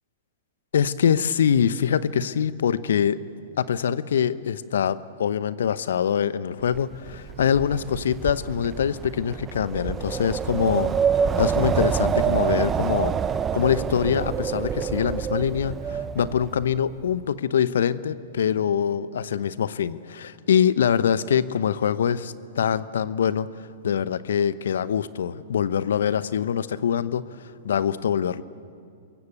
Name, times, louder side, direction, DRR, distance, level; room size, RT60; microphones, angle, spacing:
voice 1, 0.7-3.2 3.6-13.2 13.5-23.5 23.8-28.4, left 8 dB, 70° left, 16 dB, 0.9 m, -24 dB
Wind, 6.7-16.8, right 7 dB, 20° right, 0.8 m, -27 dB
27.5 x 23.0 x 8.3 m, 2.4 s
hypercardioid pair, 110°, 0 cm